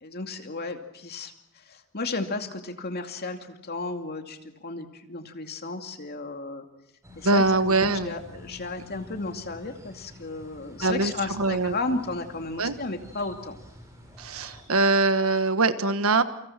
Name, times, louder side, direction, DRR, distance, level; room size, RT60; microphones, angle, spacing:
voice 1, 0.0-6.7 7.2-13.6, left 3 dB, 50° left, 5 dB, 2.5 m, -34 dB
sound 1, 7.0-14.7, left 1 dB, 15° right, 7.1 m, -48 dB
voice 2, 7.2-8.1 10.8-11.8 12.6-12.7 14.2-16.2, right 3 dB, 75° right, 11 dB, 1.4 m, -23 dB
29.0 x 25.5 x 6.0 m, 0.81 s
head